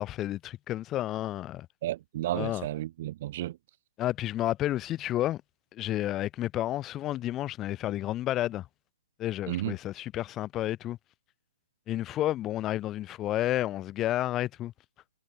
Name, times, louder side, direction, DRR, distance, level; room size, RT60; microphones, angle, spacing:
voice 1, 0.0-1.7 2.3-2.7 4.0-5.4 5.7-8.7 9.2-11.0 11.9-14.7, left 14 dB, 20° left, 0.8 m, -31 dB
voice 2, 1.8-3.6 9.5-9.7, right 14 dB, 40° right, 0.6 m, -32 dB
figure-of-eight pair, 130°, 0 cm